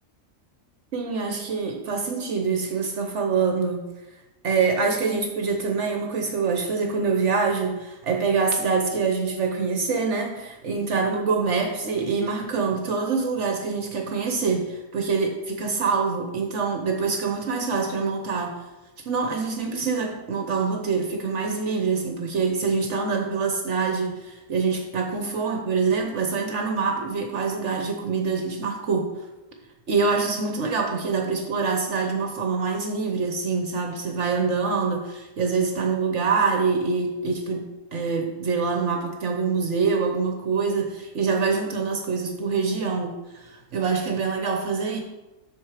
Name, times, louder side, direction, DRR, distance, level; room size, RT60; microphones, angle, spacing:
voice 1, 0.9-3.9 4.4-18.6 19.0-29.1 29.9-45.0, right 4 dB, 65° right, 3 dB, 1.2 m, -25 dB
7.8 x 6.4 x 5.0 m, 1.1 s
omnidirectional pair, 1.4 m